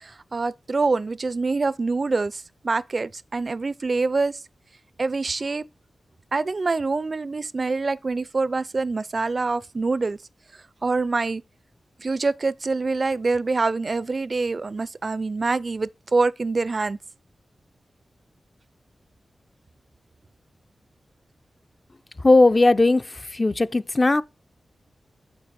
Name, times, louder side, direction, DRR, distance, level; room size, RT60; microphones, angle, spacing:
voice 1, 0.0-4.4 5.0-5.6 6.3-10.2 10.8-11.4 12.0-17.0, right 3 dB, 50° right, 0.4 m, -25 dB
voice 2, 22.2-24.2, left 2 dB, 35° left, 0.5 m, -18 dB
7.9 x 6.8 x 4.2 m
cardioid pair, 55°, 0 cm